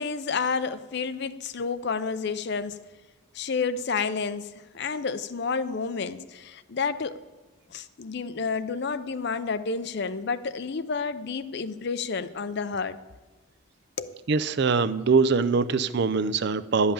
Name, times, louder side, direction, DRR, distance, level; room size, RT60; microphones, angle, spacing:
voice 1, 0.0-2.8 3.3-7.2 7.7-13.0 14.0-14.1, left 5 dB, 55° left, 0.5 m, -30 dB
voice 2, 14.3-16.9, right 4 dB, 55° right, 0.5 m, -23 dB
12.0 x 5.6 x 8.7 m
head